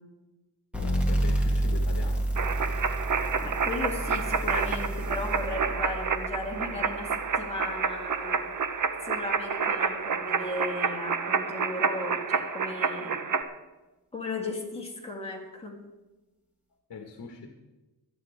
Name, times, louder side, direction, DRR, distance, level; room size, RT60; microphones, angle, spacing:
voice 1, 0.7-2.3 16.9-17.5, left 5 dB, 60° left, 3 dB, 1.6 m, -41 dB
sound 1, 0.7-8.0, right 1 dB, 5° right, 3.0 m, -30 dB
sound 2, 2.4-13.4, right 5 dB, 50° right, 1.1 m, -29 dB
voice 2, 3.4-8.5 9.0-13.2 14.1-15.8, left 2 dB, 15° left, -2 dB, 3.3 m, -36 dB
25.0 x 9.9 x 3.7 m, 1.1 s
wide cardioid pair, 105°, 40 cm